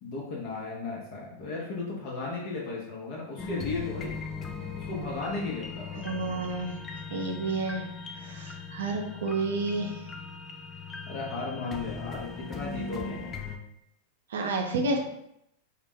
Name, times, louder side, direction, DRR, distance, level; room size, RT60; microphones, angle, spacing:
voice 1, 0.0-4.1 4.8-6.1 11.1-13.4, left 3 dB, 55° left, -3 dB, 0.7 m, -35 dB
sound 1, 3.4-13.6, left 5 dB, 25° left, 0.3 m, -39 dB
voice 2, 6.0-6.8 7.1-7.8 8.2-10.0 14.3-15.0, right 3 dB, 75° right, 3 dB, 0.5 m, -30 dB
2.3 x 2.0 x 3.6 m, 0.79 s
hypercardioid pair, 105°, 0 cm